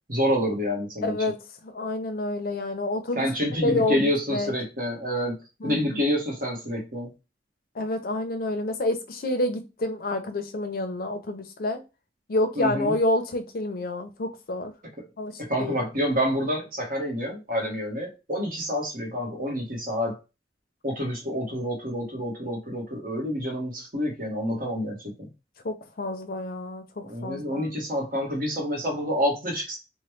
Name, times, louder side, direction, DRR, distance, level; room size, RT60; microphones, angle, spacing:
voice 1, 0.1-1.2 3.1-7.1 12.6-12.9 15.4-20.2 20.8-25.3 27.1-29.8, equal, 50° right, 1.3 m, -28 dB
voice 2, 1.0-1.4 1.6-3.3 3.6-4.5 5.6-6.0 7.7-11.8 12.3-14.7 15.2-15.8 25.6-27.7, left 2 dB, 55° left, 0.6 m, -28 dB
3.1 x 2.2 x 3.1 m
head